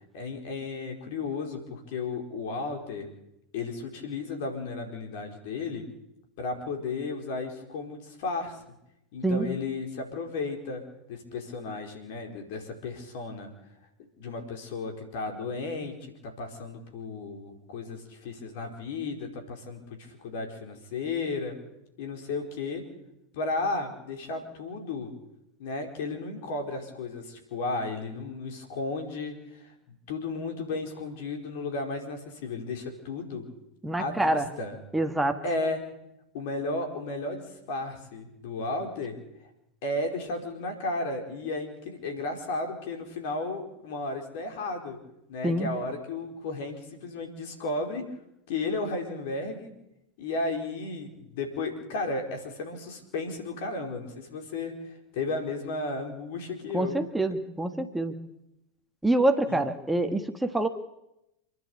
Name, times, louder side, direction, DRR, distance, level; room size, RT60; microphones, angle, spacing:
voice 1, 0.1-3.1 3.5-5.8 6.4-8.6 9.1-10.8 11.1-13.5 14.2-16.0 16.2-21.6 22.0-22.8 23.3-25.1 25.6-33.5 34.0-34.8 35.4-35.8 36.3-39.2 39.8-45.0 45.3-48.0 48.5-49.7 50.2-57.0 59.5-59.6, left 3 dB, 60° left, 4 dB, 4.6 m, -34 dB
voice 2, 33.8-34.5 34.9-35.4 45.4-45.7 56.7-58.1 59.0-60.7, right 1 dB, 5° right, 6 dB, 1.6 m, -26 dB
28.0 x 11.0 x 8.5 m, 0.86 s
hypercardioid pair, 85°, 0 cm